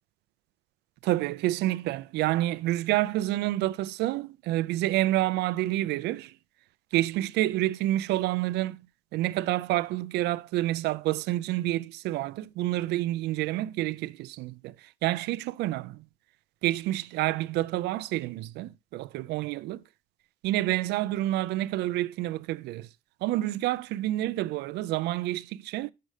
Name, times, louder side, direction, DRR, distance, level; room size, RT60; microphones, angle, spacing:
voice 1, 1.0-6.3 6.9-8.8 9.1-16.0 16.6-19.8 20.4-22.9 23.2-25.9, right 16 dB, 80° right, 0.5 m, -28 dB
6.7 x 6.3 x 4.9 m
cardioid pair, 110°, 17 cm